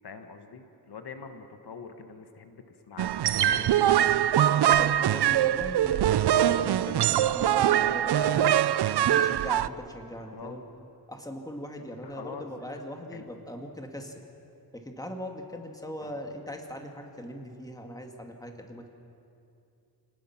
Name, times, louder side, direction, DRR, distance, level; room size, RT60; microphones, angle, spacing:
voice 1, 0.0-3.1 10.3-10.6 12.0-12.5 13.1-13.3 16.0-16.2, left 5 dB, 75° left, 7 dB, 1.5 m, -44 dB
sound 1, 3.0-9.7, right 11 dB, 85° right, 0.6 m, -23 dB
voice 2, 3.4-4.1 4.8-8.5 9.0-10.6 11.1-14.1 14.7-18.9, equal, 10° left, 3 dB, 2.1 m, -40 dB
29.5 x 19.0 x 5.9 m, 2.6 s
wide cardioid pair, 120°, 39 cm